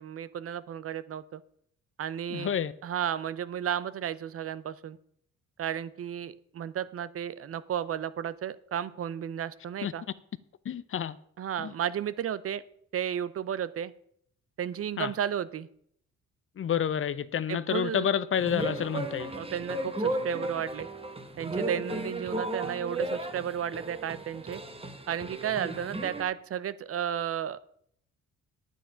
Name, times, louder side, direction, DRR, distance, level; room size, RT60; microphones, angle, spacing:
voice 1, 0.0-1.4 2.0-2.5 2.8-5.0 5.6-10.0 11.4-12.6 12.9-13.9 14.6-15.7 17.5-18.1 19.3-20.9 21.4-24.6 25.1-27.6, right 9 dB, 50° right, 0.6 m, -33 dB
voice 2, 2.3-2.7 9.8-9.9 10.6-11.2 11.6-11.7 15.0-15.1 16.6-19.3, left 8 dB, 45° left, 0.6 m, -29 dB
sound 1, 18.4-26.2, right 2 dB, 20° right, 1.3 m, -35 dB
9.1 x 9.0 x 5.7 m
cardioid pair, 90°, 30 cm